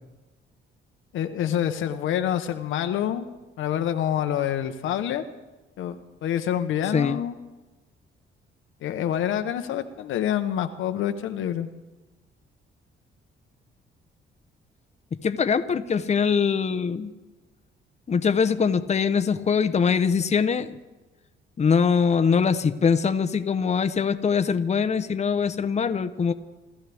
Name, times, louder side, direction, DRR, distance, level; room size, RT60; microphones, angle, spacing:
voice 1, 1.1-3.3 3.6-5.2 5.8-7.4 8.8-11.7, left 10 dB, 80° left, 8 dB, 1.1 m, -27 dB
voice 2, 15.2-17.1 18.1-20.8 21.6-26.3, left 6 dB, 35° left, 9 dB, 0.9 m, -22 dB
28.5 x 14.0 x 3.5 m, 1.2 s
cardioid pair, 90°, 20 cm